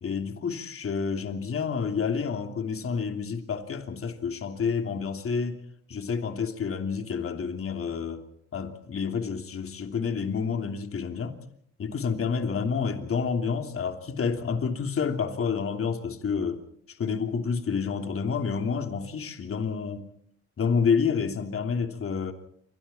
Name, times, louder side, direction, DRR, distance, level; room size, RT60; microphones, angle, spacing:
voice 1, 0.0-5.6 5.9-8.2 8.5-11.4 11.8-16.6 16.9-20.1 20.6-22.3, left 6 dB, 45° left, 3.0 m, -29 dB
28.0 x 24.5 x 4.4 m
cardioid pair, 90°, 30 cm